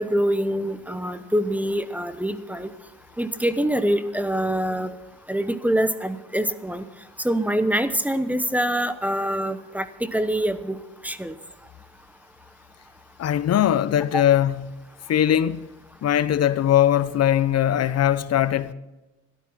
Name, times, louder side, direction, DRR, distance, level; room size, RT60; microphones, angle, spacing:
voice 1, 0.0-2.7 3.2-4.9 5.3-6.8 7.2-9.9 10.1-10.8 11.0-11.3 14.1-14.2, right 1 dB, 5° right, 0.9 m, -24 dB
voice 2, 13.2-14.8 15.1-15.7 16.0-18.7, left 11 dB, 55° left, 0.7 m, -20 dB
13.5 x 12.0 x 5.9 m
cardioid pair, 90°, 30 cm